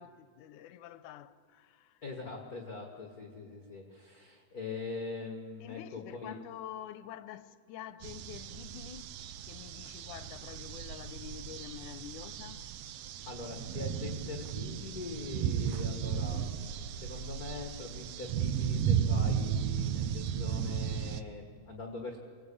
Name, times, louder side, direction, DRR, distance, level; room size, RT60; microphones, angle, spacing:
voice 1, 0.0-2.0 5.6-9.1 9.4-12.6, left 11 dB, 80° left, 2.2 m, -47 dB
voice 2, 2.0-6.4 13.2-22.2, left 4 dB, 40° left, 1.5 m, -42 dB
sound 1, 8.0-21.2, right 8 dB, 70° right, 1.6 m, -35 dB
24.5 x 18.0 x 8.5 m
omnidirectional pair, 3.7 m